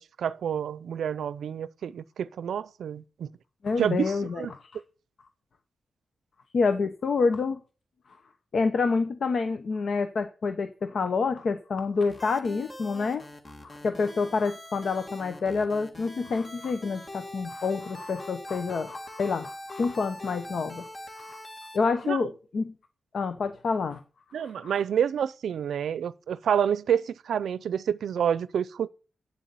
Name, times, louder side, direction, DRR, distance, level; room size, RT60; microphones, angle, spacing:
voice 1, 0.0-3.3 3.8-4.5 22.0-22.2 24.3-28.9, right 8 dB, 90° right, 0.5 m, -28 dB
voice 2, 3.6-4.8 6.5-7.6 8.1-8.2 8.5-13.3 13.6-20.9 21.2-21.4 21.7-22.7 23.1-24.0 24.6-24.8, left 4 dB, 70° left, 0.9 m, -28 dB
sound 1, 12.1-21.8, left 1 dB, 35° left, 2.3 m, -43 dB
9.2 x 7.3 x 6.9 m
cardioid pair, 55°, 0 cm